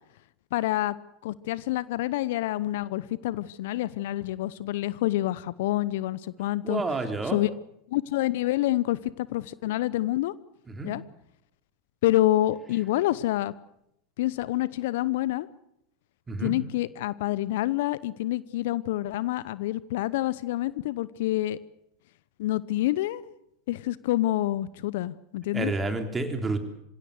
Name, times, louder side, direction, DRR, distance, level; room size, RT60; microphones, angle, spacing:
voice 1, 0.5-0.9 1.2-6.8 7.2-7.5 7.9-10.3 10.8-11.0 12.0-13.5 14.2-15.5 16.4-21.6 22.4-23.3 23.7-25.7, left 15 dB, 65° left, 18 dB, 0.8 m, -27 dB
voice 2, 6.6-7.4 10.7-10.9 16.3-16.5 25.5-26.6, right 3 dB, 15° right, 6 dB, 3.7 m, -29 dB
26.5 x 17.0 x 8.0 m, 0.80 s
hypercardioid pair, 90°, 0 cm